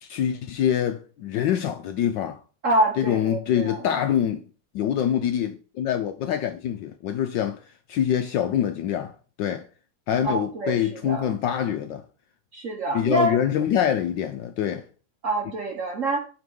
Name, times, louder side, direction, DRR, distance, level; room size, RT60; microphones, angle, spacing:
voice 1, 0.0-2.4 3.0-4.4 4.7-7.6 7.9-9.7 10.1-12.0 12.9-14.9, left 10 dB, 75° left, 1.1 m, -25 dB
voice 2, 2.6-3.9 10.2-11.4 12.5-13.4 15.2-16.2, right 2 dB, 55° right, 0.9 m, -26 dB
7.8 x 3.5 x 5.3 m
omnidirectional pair, 2.4 m